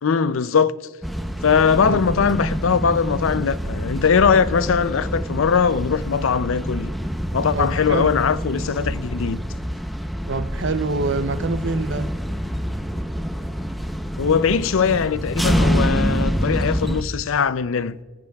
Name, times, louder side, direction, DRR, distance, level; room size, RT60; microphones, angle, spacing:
voice 1, 0.0-0.7 1.4-6.9 7.3-9.4 14.2-18.0, left 6 dB, 70° left, 0.5 m, -20 dB
sound 1, 1.0-17.0, equal, ahead, 0.6 m, -26 dB
voice 2, 7.5-8.2 10.3-12.1, right 3 dB, 60° right, 0.6 m, -26 dB
25.0 x 14.0 x 2.3 m
head